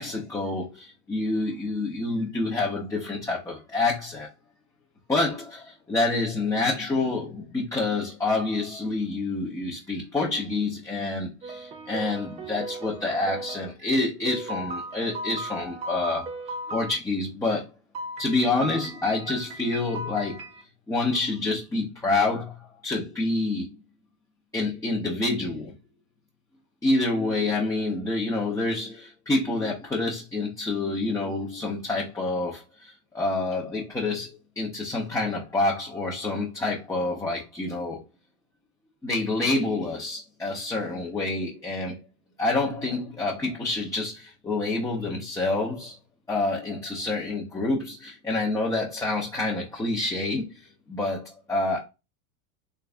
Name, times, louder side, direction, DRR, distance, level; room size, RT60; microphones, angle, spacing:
voice 1, 0.0-4.3 5.1-16.3 16.7-17.6 18.2-20.4 20.9-22.6 22.8-23.7 24.5-25.7 26.8-38.0 39.0-42.0 42.4-46.0 46.3-50.5 50.9-51.8, left 2 dB, 5° left, 0.7 m, -27 dB
sound 1, 11.4-13.7 14.3-16.9 17.9-20.6, right 1 dB, 15° right, 0.3 m, -37 dB
3.5 x 3.2 x 2.4 m
supercardioid pair, 125°, 44 cm